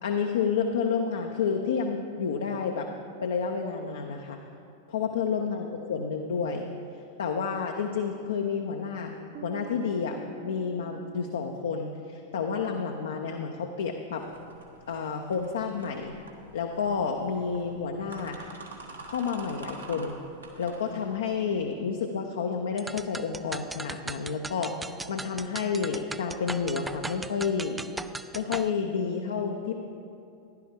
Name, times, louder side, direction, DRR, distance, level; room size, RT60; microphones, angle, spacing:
voice 1, 0.0-2.9 3.2-4.4 4.9-6.7 7.2-9.2 9.4-14.3 14.9-16.2 16.5-18.4 19.1-20.2 20.6-27.8 28.3-29.8, left 6 dB, 65° left, 3 dB, 0.6 m, -30 dB
sound 1, 9.3-12.7, right 8 dB, 50° right, 0.8 m, -48 dB
sound 2, 14.1-21.7, right 3 dB, 75° right, 1.4 m, -47 dB
sound 3, 22.8-28.7, right 2 dB, 10° right, 0.3 m, -38 dB
15.0 x 11.0 x 3.5 m, 2.5 s
figure-of-eight pair, 90°, 0 cm